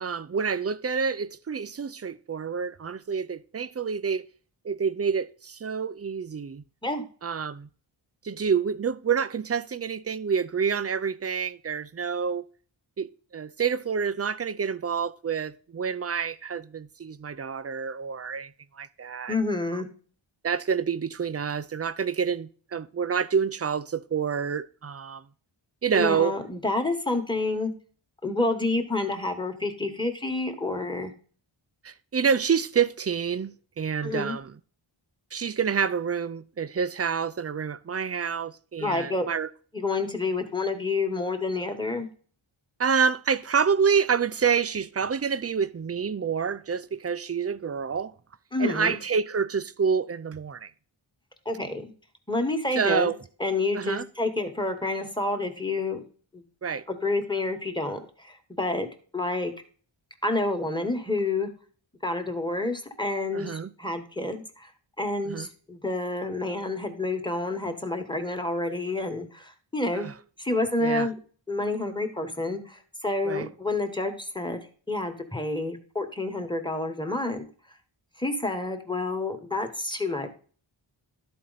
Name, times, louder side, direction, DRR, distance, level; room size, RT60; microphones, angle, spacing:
voice 1, 0.0-4.3 4.6-6.6 7.2-7.7 8.2-12.5 13.0-19.4 19.7-19.8 20.4-25.3 25.8-26.3 31.8-34.5 35.3-39.5 42.8-48.1 48.6-50.7 52.8-53.1 53.7-54.0 56.6-56.8 63.3-63.7 65.2-65.5 69.9-70.1 70.8-71.1 73.2-73.5, right 6 dB, 30° right, 0.4 m, -28 dB
voice 2, 19.3-19.9 25.9-27.7 28.2-31.1 34.0-34.4 38.8-39.3 39.7-42.1 48.5-49.0 51.4-51.9 52.3-53.1 53.4-56.0 56.3-56.4 56.9-58.9 59.1-59.5 60.2-61.5 62.0-64.7 65.0-70.1 70.4-71.1 71.5-74.6 74.9-77.4 78.2-80.3, left 2 dB, 10° left, 1.3 m, -29 dB
12.0 x 4.3 x 4.0 m
wide cardioid pair, 55°, 49 cm